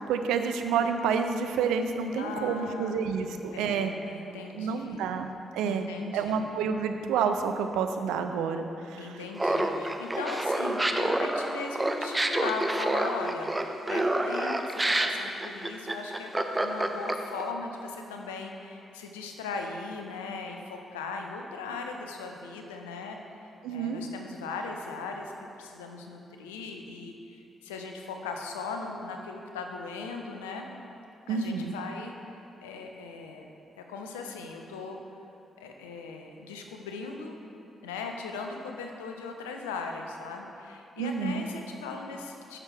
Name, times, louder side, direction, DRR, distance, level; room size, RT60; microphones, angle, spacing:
voice 1, 0.1-3.9 4.5-5.9 6.1-9.2 23.6-24.0 31.3-31.7 41.0-41.4, right 6 dB, 75° right, 7 dB, 0.5 m, -29 dB
voice 2, 2.2-2.9 3.5-5.0 5.7-6.4 9.0-30.7 31.3-33.5 33.8-35.0 35.6-37.4 37.8-42.6, left 4 dB, 85° left, 3 dB, 0.6 m, -38 dB
Laughter, 9.4-17.4, right 1 dB, 20° right, 0.7 m, -28 dB
13.0 x 6.2 x 3.4 m, 2.8 s
hypercardioid pair, 40°, 0 cm